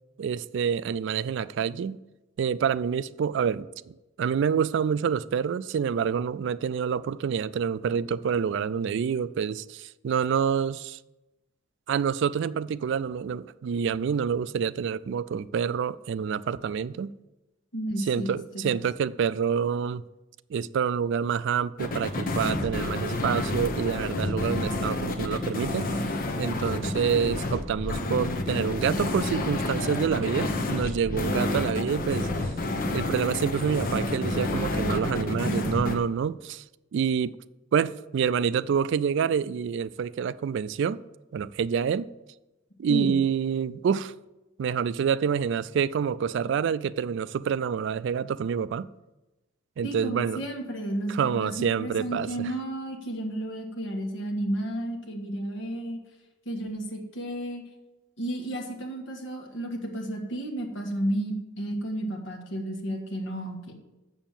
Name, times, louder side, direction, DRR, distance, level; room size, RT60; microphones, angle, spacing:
voice 1, 0.2-2.0 2.4-11.0 11.9-17.1 18.0-20.0 20.5-25.9 26.4-32.3 32.9-36.6 36.9-37.4 37.7-41.0 41.3-42.1 42.8-44.1 44.6-48.9 49.8-50.4 51.1-52.5, right 7 dB, 65° right, 0.3 m, -27 dB
voice 2, 17.7-18.8 35.5-35.9 42.9-43.2 49.8-56.0 56.5-57.6 58.2-63.7, right 1 dB, 65° left, 1.7 m, -32 dB
sound 1, 21.8-36.0, left 2 dB, 45° left, 1.0 m, -29 dB
7.1 x 7.0 x 7.3 m
head